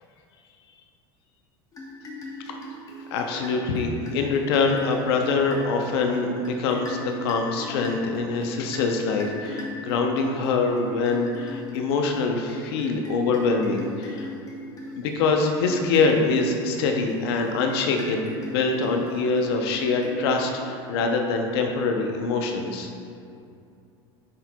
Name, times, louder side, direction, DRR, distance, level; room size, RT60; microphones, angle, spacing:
sound 1, 1.7-20.9, left 1 dB, 30° left, 1.2 m, -40 dB
voice 1, 3.1-14.3 14.9-22.9, left 4 dB, 80° left, 3 dB, 0.7 m, -24 dB
9.8 x 4.5 x 2.3 m, 2.5 s
supercardioid pair, 110°, 13 cm